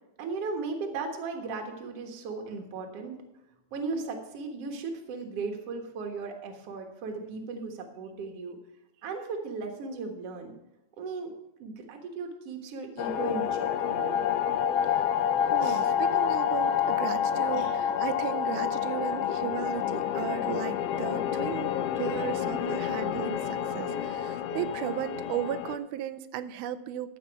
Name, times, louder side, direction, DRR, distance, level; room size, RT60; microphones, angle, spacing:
voice 1, 0.2-3.2 3.7-8.6 9.0-10.5 11.0-11.3 11.6-14.3 15.6-15.8 17.5-17.8, right 4 dB, 55° right, 3 dB, 2.3 m, -36 dB
sound 1, 13.0-25.8, left 9 dB, 85° left, 1.3 m, -28 dB
voice 2, 15.5-27.2, right 10 dB, 85° right, 13 dB, 2.1 m, -35 dB
14.0 x 5.7 x 5.7 m, 0.95 s
omnidirectional pair, 3.5 m